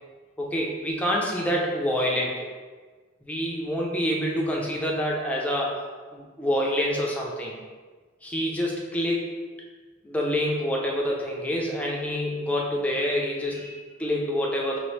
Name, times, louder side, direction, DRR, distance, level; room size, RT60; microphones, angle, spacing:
voice 1, 0.4-2.5 3.3-5.8 6.1-7.5 8.2-9.3 10.0-14.8, equal, 5° left, -3 dB, 0.6 m, -27 dB
5.2 x 2.6 x 3.2 m, 1.4 s
head